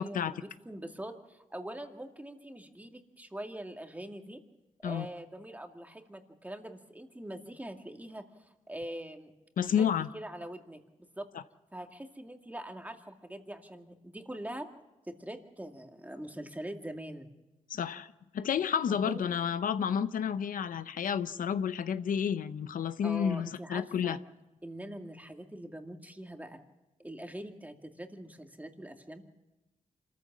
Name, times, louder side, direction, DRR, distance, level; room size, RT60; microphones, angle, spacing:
voice 1, 0.0-4.4 4.8-9.3 9.6-10.8 11.2-11.3 11.7-14.7 15.1-17.3 18.9-19.3 23.0-24.2 24.6-26.6 27.0-29.2, right 1 dB, 10° right, 4 dB, 2.2 m, -43 dB
voice 2, 9.6-10.1 17.7-18.1 18.3-24.2, left 8 dB, 90° left, 12 dB, 0.7 m, -30 dB
26.0 x 14.5 x 7.4 m, 1.1 s
cardioid pair, 75°, 14 cm